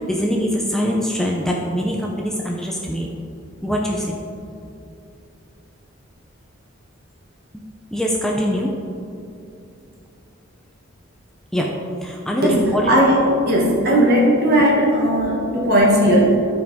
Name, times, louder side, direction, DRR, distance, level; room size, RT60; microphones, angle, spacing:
voice 1, 0.0-3.1 3.6-4.2 7.9-8.7 11.5-11.7 12.0-12.9, equal, ahead, -2 dB, 0.5 m, -22 dB
voice 2, 12.4-13.2 13.5-16.4, right 1 dB, 50° right, -3 dB, 1.7 m, -16 dB
13.0 x 4.9 x 3.6 m, 2.6 s
head